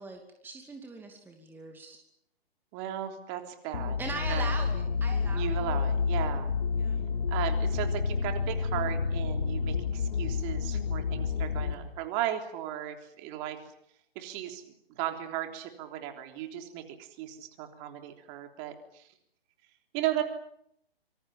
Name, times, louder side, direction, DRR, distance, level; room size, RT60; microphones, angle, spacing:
voice 1, 0.0-2.0 4.0-5.6 6.8-7.0, right 3 dB, 5° right, 3 dB, 2.6 m, -40 dB
voice 2, 2.7-4.0 4.3-4.5 5.3-6.5 7.3-13.6 14.2-14.6 14.9-19.1 19.9-20.2, right 12 dB, 30° right, 6 dB, 3.5 m, -36 dB
sound 1, 3.7-11.7, left 5 dB, 55° left, 3.6 m, -29 dB
26.5 x 25.5 x 7.3 m, 0.73 s
figure-of-eight pair, 135°, 30 cm